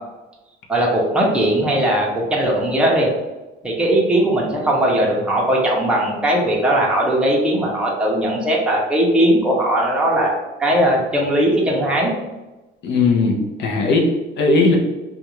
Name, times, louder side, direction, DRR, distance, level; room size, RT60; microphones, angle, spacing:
voice 1, 0.7-3.1 3.6-12.1, right 1 dB, 5° right, -3 dB, 0.6 m, -18 dB
voice 2, 12.8-14.8, left 3 dB, 60° left, 0 dB, 0.6 m, -18 dB
2.4 x 2.2 x 2.9 m, 1.1 s
cardioid pair, 125°, 20 cm